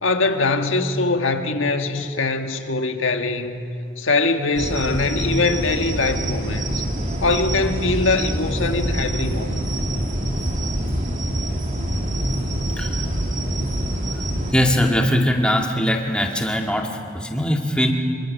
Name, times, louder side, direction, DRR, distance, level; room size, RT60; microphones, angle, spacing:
voice 1, 0.0-6.8 7.2-9.7, left 3 dB, 90° left, 6 dB, 1.7 m, -22 dB
sound 1, 4.6-14.5, right 1 dB, 40° right, 2.3 m, -25 dB
voice 2, 14.5-17.9, equal, 5° left, 1 dB, 1.8 m, -21 dB
27.0 x 23.0 x 6.5 m, 2.7 s
head